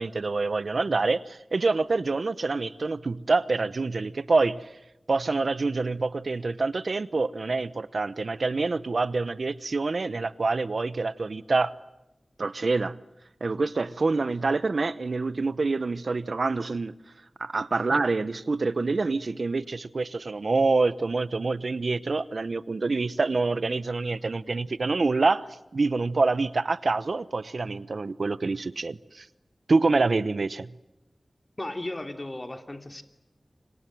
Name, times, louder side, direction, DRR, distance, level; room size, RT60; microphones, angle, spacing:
voice 1, 0.0-4.6 5.1-11.7 12.4-13.0 13.4-16.9 17.4-29.3 29.7-30.7, right 3 dB, 65° right, 16 dB, 0.9 m, -26 dB
voice 2, 31.6-33.0, left 1 dB, 30° left, 7 dB, 2.9 m, -35 dB
29.5 x 25.5 x 7.7 m, 0.99 s
wide cardioid pair, 75°, 0 cm